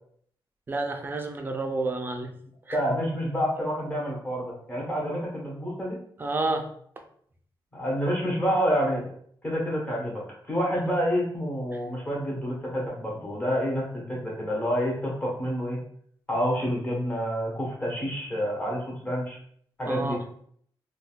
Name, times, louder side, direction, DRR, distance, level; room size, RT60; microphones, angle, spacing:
voice 1, 0.7-2.3 2.7-2.8 6.2-6.7 19.9-20.2, right 2 dB, 25° right, 4 dB, 0.4 m, -29 dB
voice 2, 2.7-6.0 7.7-9.0 9.4-10.2 10.5-15.8 16.3-19.4 19.8-20.2, equal, 20° left, -3 dB, 1.1 m, -28 dB
3.7 x 2.2 x 2.3 m, 0.63 s
wide cardioid pair, 135°, 9 cm